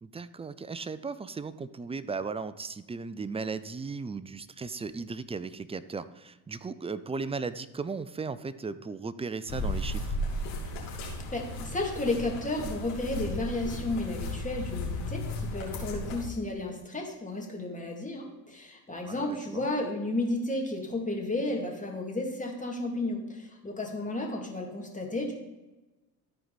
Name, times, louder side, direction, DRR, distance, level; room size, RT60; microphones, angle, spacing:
voice 1, 0.0-10.2 19.0-19.6, right 4 dB, 15° right, 15 dB, 0.4 m, -36 dB
sound 1, 9.5-16.2, left 1 dB, 75° left, 2.5 m, -35 dB
voice 2, 11.3-25.3, left 2 dB, 15° left, 0 dB, 2.5 m, -33 dB
13.5 x 4.6 x 4.1 m, 1.1 s
hypercardioid pair, 65°, 48 cm